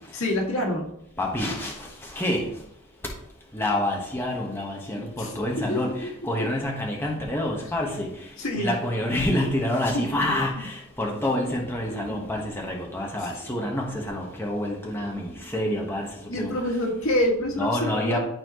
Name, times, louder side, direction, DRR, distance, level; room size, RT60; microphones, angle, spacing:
voice 1, 0.1-0.9 5.2-5.3 5.6-6.1 8.4-8.7 9.9-10.2 16.3-18.2, left 1 dB, 80° left, -1 dB, 1.9 m, -26 dB
voice 2, 1.2-1.7 2.0-2.5 3.5-8.1 8.6-16.1 16.4-16.5 17.5-18.2, left 1 dB, 10° left, -2 dB, 1.3 m, -27 dB
12.0 x 4.4 x 3.0 m, 0.79 s
head